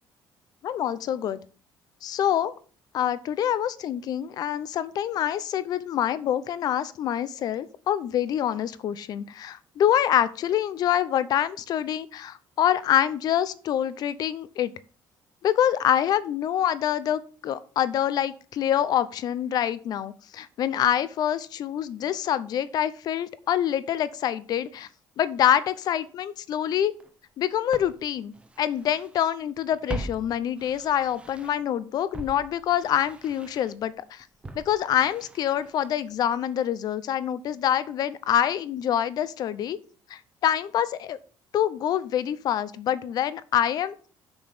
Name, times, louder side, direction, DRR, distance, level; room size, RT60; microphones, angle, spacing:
voice 1, 0.6-1.4 2.0-2.5 2.9-14.7 15.4-24.9 25.2-26.9 27.4-34.3 34.5-39.8 40.1-41.2 41.5-43.9, left 10 dB, 55° left, 16 dB, 0.7 m, -26 dB
Walk footsteps, 27.0-27.1 27.7-29.2 29.5-31.7 32.1-36.2 36.4-36.5, right 2 dB, 15° right, 0.8 m, -41 dB
6.9 x 6.2 x 6.7 m, 0.41 s
cardioid pair, 165°, 8 cm